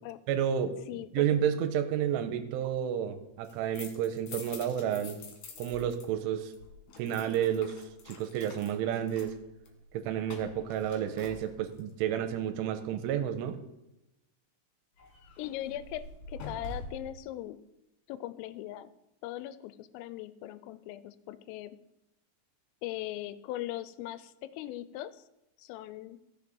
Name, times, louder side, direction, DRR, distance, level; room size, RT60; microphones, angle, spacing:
voice 1, 0.3-0.7 1.1-5.2 5.6-6.5 7.0-7.8 8.1-9.4 9.9-13.6, right 9 dB, 85° right, 9 dB, 3.2 m, -30 dB
voice 2, 0.9-1.2 15.4-17.6 18.1-18.9 19.2-21.8 22.8-25.2 25.6-26.2, left 14 dB, 85° left, 14 dB, 3.2 m, -40 dB
sound 1, 3.3-6.1 6.3-11.9 15.0-17.2, left 3 dB, 65° left, 3.4 m, -47 dB
15.0 x 7.0 x 5.3 m, 0.92 s
omnidirectional pair, 5.7 m